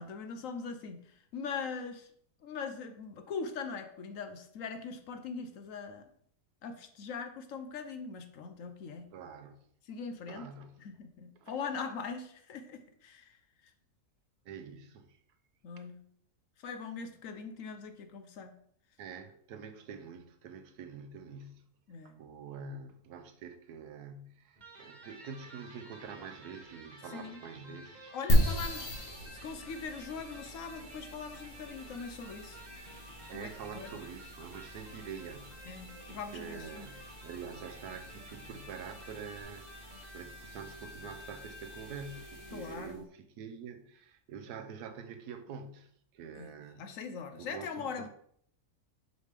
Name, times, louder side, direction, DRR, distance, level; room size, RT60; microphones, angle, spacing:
voice 1, 0.0-2.1 2.4-6.1 6.6-9.1 9.9-10.5 10.8-13.4 13.6-13.7 15.6-16.0 16.6-18.5 21.9-22.2 27.1-27.4 28.1-28.9 29.3-32.6 33.3-34.0 35.7-36.9 42.5-43.0 46.4-46.5 46.8-48.1, left 5 dB, 65° left, 1.0 m, -41 dB
voice 2, 9.1-9.6 10.3-10.8 11.4-11.5 14.4-15.2 19.0-21.7 22.2-28.2 29.2-29.3 33.3-35.8 36.1-46.9 47.3-48.1, right 6 dB, 90° right, 1.3 m, -46 dB
Electric guitar, 24.6-42.9, right 1 dB, 35° right, 1.0 m, -52 dB
sound 1, 28.3-43.0, equal, 40° left, 1.8 m, -37 dB
6.4 x 3.3 x 5.0 m
omnidirectional pair, 1.6 m